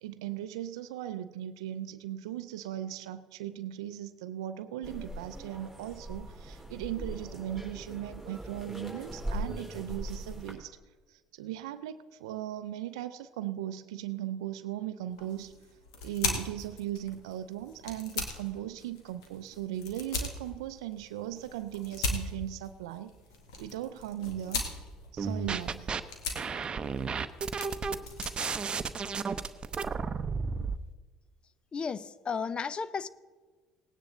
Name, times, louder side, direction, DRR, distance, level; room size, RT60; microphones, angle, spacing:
voice 1, 0.0-10.7 11.1-15.5 16.0-23.1 23.6-24.6 25.1-25.9, right 12 dB, 80° right, 11 dB, 0.5 m, -38 dB
sound 1, 4.8-10.5, right 1 dB, ahead, 4.1 m, -40 dB
sound 2, 15.1-29.7, left 3 dB, 85° left, 1.9 m, -40 dB
sound 3, 25.2-26.0 26.3-30.8, right 5 dB, 35° right, 0.7 m, -33 dB
voice 2, 31.7-33.1, left 5 dB, 35° left, 17 dB, 0.6 m, -34 dB
18.0 x 9.8 x 3.9 m, 1.4 s
hypercardioid pair, 65°, 3 cm